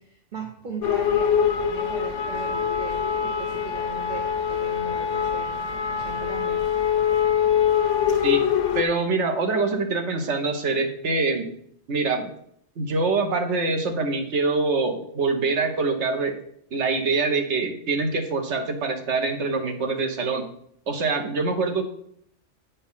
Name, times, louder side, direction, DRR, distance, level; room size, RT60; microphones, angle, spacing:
voice 1, 0.0-6.6, right 4 dB, 45° right, 1 dB, 1.0 m, -38 dB
sound 1, 0.8-8.8, left 8 dB, 85° left, 1.0 m, -24 dB
voice 2, 8.7-11.5 11.9-12.3 12.8-16.3 16.7-20.5 20.9-21.8, right 3 dB, 70° right, 4 dB, 1.4 m, -24 dB
8.5 x 4.2 x 5.6 m, 0.66 s
omnidirectional pair, 1.2 m